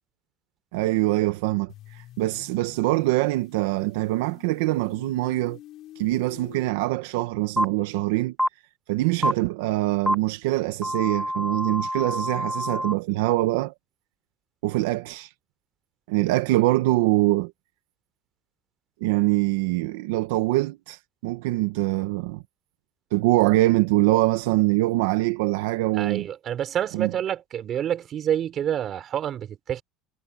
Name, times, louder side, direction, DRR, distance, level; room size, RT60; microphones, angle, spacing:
voice 1, 0.7-5.6 6.0-8.3 8.9-13.7 14.6-15.3 16.1-17.5 19.0-22.4 23.1-26.3 26.9-27.1, right 18 dB, 90° right, 1.1 m, -24 dB
sound 1, 1.7-6.7, left 14 dB, 50° left, 6.4 m, -48 dB
sound 2, 7.6-7.7 8.4-8.5 9.2-9.3 10.1-10.2 10.8-12.9, equal, ahead, 0.4 m, -26 dB
voice 2, 25.9-29.8, right 10 dB, 40° right, 3.9 m, -28 dB
supercardioid pair, 125°, 0 cm